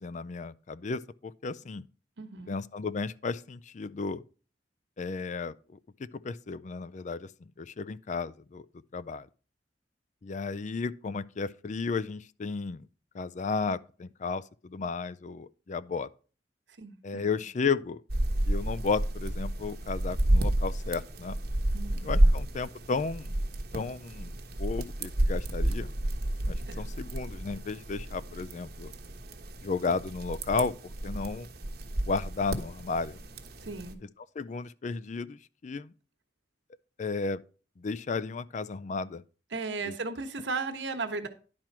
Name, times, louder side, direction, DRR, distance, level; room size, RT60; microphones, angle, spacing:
voice 1, 0.0-1.9 2.5-4.2 5.0-8.7 8.9-9.3 10.2-12.9 13.1-16.1 17.0-18.0 18.5-21.4 22.0-23.4 23.7-25.9 26.5-28.9 29.6-30.7 31.0-31.5 32.1-33.2 34.4-35.9 37.0-37.4 37.8-39.2 39.8-40.0, left 4 dB, 40° left, 0.4 m, -33 dB
voice 2, 2.2-2.5 16.8-17.4 21.7-22.3 26.7-26.8 33.6-34.0 39.5-41.3, right 4 dB, 85° right, 1.2 m, -36 dB
sound 1, 18.1-33.9, right 1 dB, 60° right, 1.1 m, -30 dB
10.5 x 4.4 x 6.0 m
head